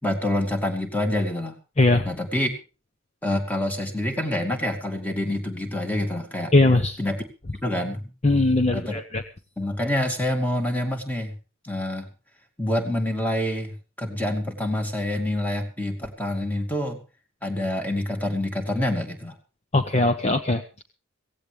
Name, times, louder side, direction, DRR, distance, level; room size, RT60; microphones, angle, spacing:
voice 1, 0.0-1.6 2.1-2.5 3.2-6.5 7.0-7.2 7.6-8.1 8.7-9.0 9.6-11.4 11.6-12.1 12.6-17.0 17.4-19.4, left 1 dB, 10° left, 4 dB, 2.3 m, -27 dB
voice 2, 1.8-2.1 6.5-7.0 8.2-9.2 19.7-20.8, left 2 dB, 30° left, 8 dB, 0.9 m, -20 dB
17.0 x 16.0 x 3.5 m, 0.32 s
head